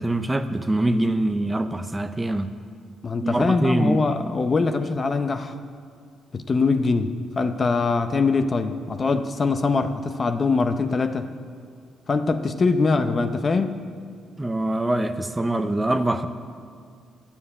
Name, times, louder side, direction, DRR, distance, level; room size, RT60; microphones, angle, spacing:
voice 1, 0.0-2.5 3.2-4.0 14.4-16.3, right 1 dB, 15° right, 9 dB, 0.5 m, -24 dB
voice 2, 3.0-5.5 6.3-11.3 12.1-13.8, left 4 dB, 35° left, 9 dB, 0.6 m, -23 dB
9.3 x 7.2 x 8.5 m, 2.2 s
cardioid pair, 90°, 0 cm